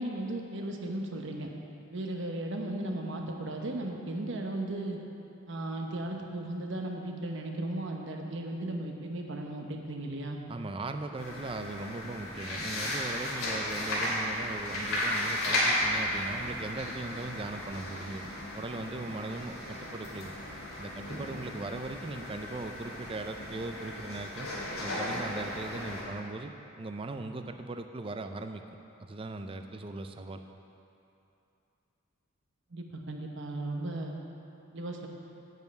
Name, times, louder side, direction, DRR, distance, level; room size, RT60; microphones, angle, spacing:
voice 1, 0.0-1.5 1.9-5.0 5.5-10.4 32.7-34.1 34.7-35.1, right 1 dB, 60° right, 2 dB, 1.0 m, -36 dB
voice 2, 10.5-20.3 20.8-24.5 24.8-28.6 29.0-30.4, right 2 dB, 25° right, 7 dB, 0.4 m, -39 dB
sound 1, 11.2-26.0, left 1 dB, 85° left, 2.7 m, -35 dB
9.3 x 5.4 x 8.1 m, 2.8 s
head